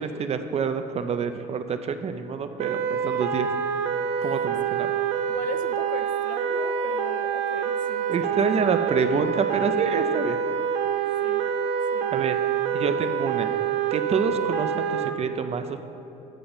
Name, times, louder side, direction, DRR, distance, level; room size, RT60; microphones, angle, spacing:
voice 1, 0.0-3.5 4.2-4.9 8.1-10.4 12.1-12.4 12.7-13.5 13.9-15.8, right 6 dB, 40° right, 9 dB, 0.4 m, -27 dB
sound 1, 2.6-15.1, right 7 dB, 90° right, 0.5 m, -26 dB
voice 2, 5.3-8.7 11.2-11.5 11.9-12.2, left 7 dB, 50° left, 9 dB, 0.5 m, -39 dB
8.9 x 3.8 x 7.1 m, 2.8 s
cardioid pair, 110°, 17 cm